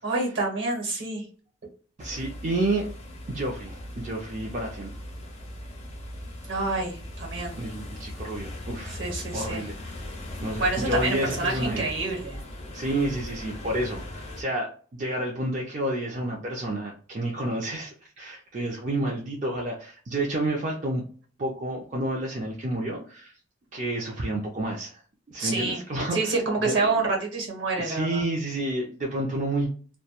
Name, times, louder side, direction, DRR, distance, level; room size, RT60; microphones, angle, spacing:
voice 1, 0.0-1.2 6.5-7.6 8.9-9.6 10.6-12.4 25.4-25.8 26.1-28.2, right 3 dB, 65° right, 1 dB, 1.0 m, -27 dB
sound 1, 2.0-14.4, left 1 dB, 30° left, 0.4 m, -39 dB
voice 2, 2.0-2.9 3.3-4.9 7.6-9.0 9.3-10.1 10.4-11.9 12.7-21.0 21.4-23.3 23.7-25.0 25.3-26.3 26.7-26.8 27.8-29.7, right 1 dB, 35° right, -2 dB, 0.4 m, -30 dB
2.2 x 2.1 x 2.8 m, 0.42 s
head